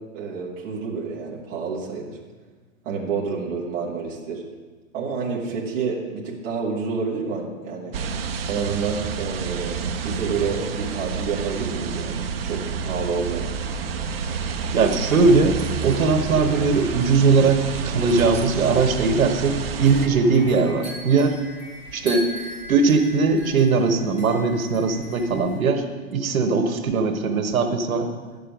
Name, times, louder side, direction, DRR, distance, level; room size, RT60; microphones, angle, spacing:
voice 1, 0.0-2.2 2.8-4.4 4.9-7.9 8.5-13.5, right 5 dB, 15° right, -4 dB, 1.1 m, -29 dB
sound 1, 7.9-20.1, right 6 dB, 45° right, 0.6 m, -29 dB
sound 2, 8.0-20.6, left 2 dB, 45° left, 1.5 m, -42 dB
voice 2, 14.7-21.4 21.9-22.3 22.7-25.8 26.1-28.1, right 4 dB, 70° right, 5 dB, 1.3 m, -20 dB
sound 3, 19.8-25.6, equal, 25° left, 3.7 m, -39 dB
11.5 x 6.8 x 5.2 m, 1.4 s
hypercardioid pair, 165°, 42 cm